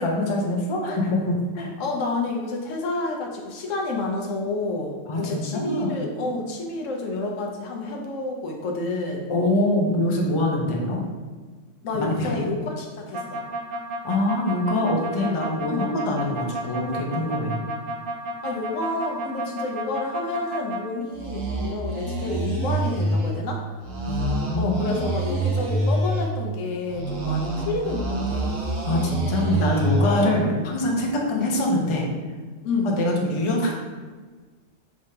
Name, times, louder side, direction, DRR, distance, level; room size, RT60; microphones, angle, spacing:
voice 1, 0.0-1.7 5.1-6.0 9.3-11.0 11.9-12.6 13.7-17.6 24.1-25.1 28.9-32.1 32.8-33.7, left 1 dB, 35° left, -1 dB, 0.5 m, -24 dB
voice 2, 1.8-9.3 11.8-13.4 15.7-15.9 18.4-23.6 24.6-28.6 30.1-30.6 31.4-31.5 32.6-33.0, left 3 dB, 75° left, 1 dB, 1.0 m, -29 dB
sound 1, 13.1-20.8 21.1-23.3 23.8-26.3 26.9-30.2, right 2 dB, 80° right, 1.2 m, -27 dB
4.9 x 3.4 x 2.7 m, 1.4 s
omnidirectional pair, 1.3 m